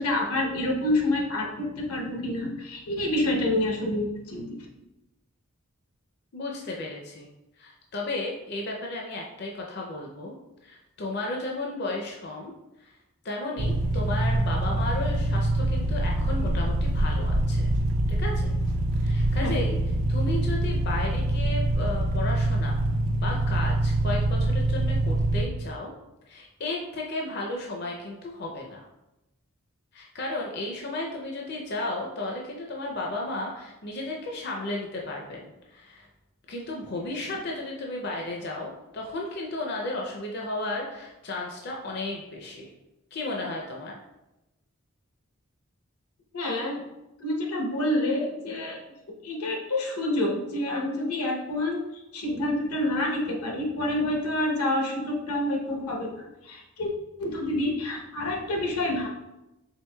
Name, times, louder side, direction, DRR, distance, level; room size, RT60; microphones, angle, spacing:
voice 1, 0.0-4.5 19.4-19.6 46.3-46.8 47.2-48.8 49.2-56.9 57.2-59.1, left 1 dB, 90° left, 0 dB, 0.8 m, -28 dB
voice 2, 6.3-7.3 7.6-10.3 10.6-12.5 12.8-12.9 13.2-17.7 18.2-18.5 19.0-19.8 20.1-22.8 23.2-25.9 26.3-28.9 29.9-36.1 36.5-42.7 43.1-44.0, left 2 dB, 45° left, -1 dB, 0.5 m, -34 dB
sound 1, 13.6-25.4, right 1 dB, 55° right, 0.4 m, -25 dB
4.5 x 3.6 x 2.2 m, 0.95 s
head